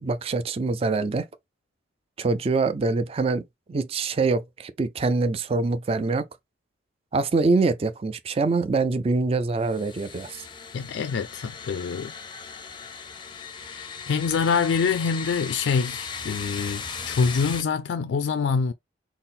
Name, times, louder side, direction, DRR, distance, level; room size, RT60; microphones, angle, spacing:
voice 1, 0.0-1.3 2.2-3.4 3.7-6.2 7.1-10.4, right 3 dB, 30° right, 0.4 m, -24 dB
sound 1, 9.6-17.6, left 6 dB, 25° left, 0.5 m, -37 dB
voice 2, 10.7-12.1 13.6-18.7, left 5 dB, 85° left, 0.3 m, -25 dB
4.1 x 2.0 x 3.6 m
head